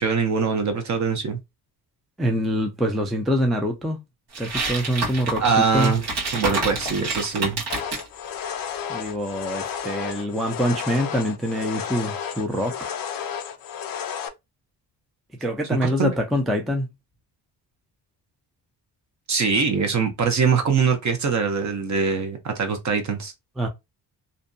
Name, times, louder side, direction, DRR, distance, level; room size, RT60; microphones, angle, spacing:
voice 1, 0.0-1.4 5.4-6.0 6.3-7.6 15.8-16.1 19.3-23.3, right 5 dB, 45° right, 0.8 m, -23 dB
voice 2, 2.2-4.0 4.4-5.9 8.9-12.9 15.4-16.9 23.6-23.7, equal, ahead, 0.4 m, -25 dB
sound 1, 4.3-8.1, right 3 dB, 70° right, 1.3 m, -28 dB
sound 2, 7.7-14.3, left 8 dB, 55° left, 0.5 m, -32 dB
2.6 x 2.2 x 2.6 m
cardioid pair, 105°, 41 cm